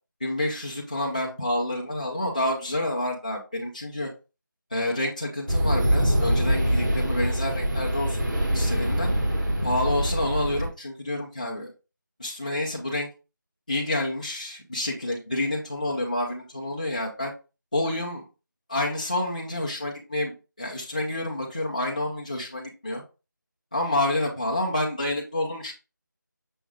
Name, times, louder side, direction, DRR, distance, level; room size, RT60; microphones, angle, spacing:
voice 1, 0.2-4.1 4.7-9.1 9.6-11.7 12.2-13.1 13.7-17.3 17.7-18.2 18.7-23.0 23.7-25.7, left 1 dB, 25° left, -3 dB, 0.5 m, -28 dB
sound 1, 5.5-10.7, equal, 65° right, 1.6 m, -24 dB
6.1 x 2.4 x 3.3 m, 0.31 s
figure-of-eight pair, 175°, 11 cm